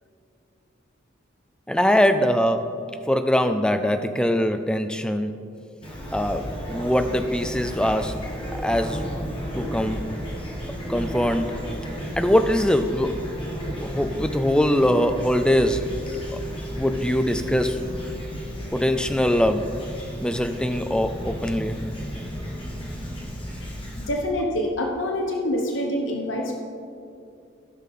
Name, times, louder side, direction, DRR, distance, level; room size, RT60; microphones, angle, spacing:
voice 1, 1.7-5.5 6.1-8.2 8.5-9.0 9.5-10.1 10.9-11.6 12.2-13.3 13.8-15.9 16.3-16.4 16.7-17.8 18.7-19.8 20.2-21.8, equal, 5° left, 7 dB, 0.4 m, -22 dB
Fowl / Chirp tweet, 5.8-24.1, equal, 25° left, 1.5 m, -33 dB
voice 2, 24.1-26.5, left 1 dB, 85° left, 1 dB, 0.9 m, -26 dB
15.5 x 5.8 x 3.7 m, 2.4 s
head